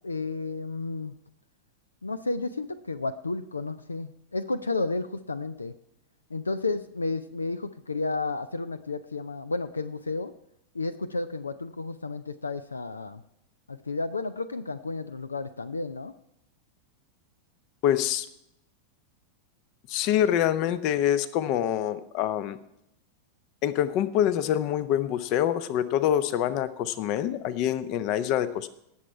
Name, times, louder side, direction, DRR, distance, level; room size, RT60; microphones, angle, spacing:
voice 1, 0.0-1.1 2.0-5.7 6.3-10.3 10.7-13.2 13.7-16.1, left 3 dB, 80° left, 14 dB, 0.5 m, -32 dB
voice 2, 17.8-18.3 19.9-22.6 23.6-28.7, left 10 dB, 40° left, 15 dB, 0.8 m, -25 dB
18.5 x 7.3 x 4.5 m, 0.78 s
figure-of-eight pair, 90°, 0 cm